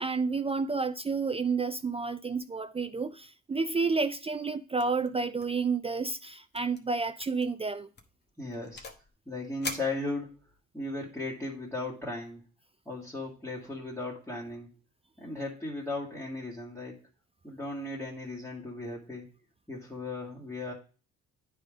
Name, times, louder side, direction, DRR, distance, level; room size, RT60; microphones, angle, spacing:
voice 1, 0.0-7.9, right 4 dB, 20° right, 0.4 m, -30 dB
sound 1, 4.8-5.1 5.4-5.7 5.9-6.0 6.5-6.8 7.2-7.5 8.0-9.1 9.6-10.6, left 3 dB, 35° left, 1.1 m, -42 dB
voice 2, 8.4-8.9 9.3-10.3 10.7-12.4 12.9-14.7 15.2-17.0 17.4-19.3 19.7-20.7, left 2 dB, 5° left, 1.8 m, -36 dB
8.9 x 3.5 x 5.0 m
cardioid pair, 90°, 30 cm